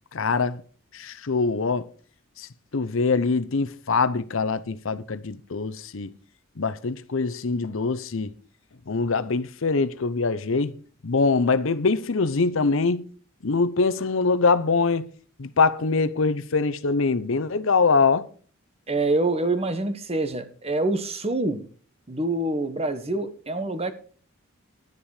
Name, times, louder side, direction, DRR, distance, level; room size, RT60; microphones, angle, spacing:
voice 1, 0.1-0.6 0.9-1.9 2.4-2.5 2.7-6.1 6.6-8.3 8.9-10.8 11.0-13.1 13.4-15.1 15.4-18.3, left 4 dB, 70° left, 0.7 m, -23 dB
voice 2, 18.9-21.6 22.1-23.9, right 2 dB, 30° right, 1.2 m, -26 dB
11.0 x 10.0 x 4.9 m
head